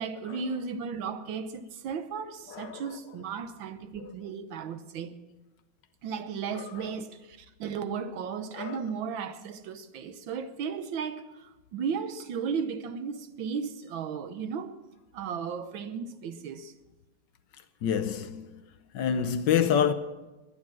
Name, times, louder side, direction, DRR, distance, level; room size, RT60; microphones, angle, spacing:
voice 1, 0.0-5.2 6.0-14.8 15.1-16.7, right 6 dB, 75° right, 1.6 m, -35 dB
voice 2, 2.5-3.0 4.0-4.1 6.5-6.9 8.5-8.9 17.8-18.6 18.9-19.9, left 8 dB, 65° left, 1.3 m, -28 dB
20.5 x 10.0 x 6.1 m
omnidirectional pair, 2.2 m